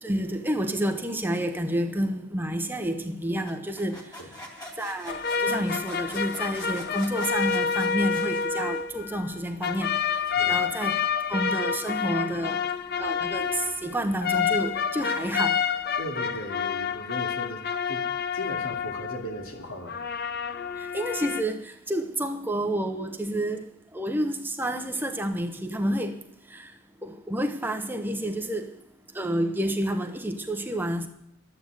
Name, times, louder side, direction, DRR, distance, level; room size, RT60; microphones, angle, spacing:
voice 1, 0.0-4.1 4.8-11.0 11.3-12.7 13.0-15.6 20.8-23.7 23.9-26.2 26.5-26.7 27.0-28.7 29.1-31.1, right 1 dB, 10° right, 0.8 m, -29 dB
sound 1, 3.5-9.1, left 1 dB, 15° left, 2.4 m, -44 dB
sound 2, 5.1-9.4 9.6-19.5 19.9-21.4, left 6 dB, 45° left, 0.6 m, -28 dB
voice 2, 10.3-10.7 16.0-18.1 18.3-20.0, equal, 80° left, 2.7 m, -37 dB
13.0 x 9.4 x 8.1 m
head